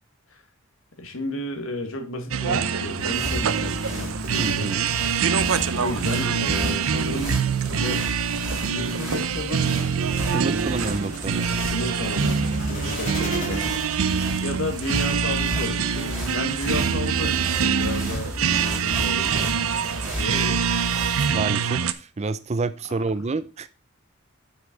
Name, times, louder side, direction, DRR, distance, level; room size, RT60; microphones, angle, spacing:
voice 1, 1.0-4.8 5.7-10.2 11.5-14.1 14.4-19.6 20.2-20.7, left 1 dB, 70° left, 5 dB, 1.8 m, -33 dB
sound 1, 2.3-21.9, right 6 dB, 75° right, 0.6 m, -25 dB
sound 2, 2.7-21.5, left 1 dB, 5° right, 3.1 m, -35 dB
voice 2, 4.4-4.9 10.3-11.5 21.3-23.7, right 3 dB, 30° right, 15 dB, 0.4 m, -28 dB
sound 3, 10.0-14.6, left 3 dB, 40° left, 2.0 m, -39 dB
8.0 x 5.7 x 3.9 m, 0.34 s
head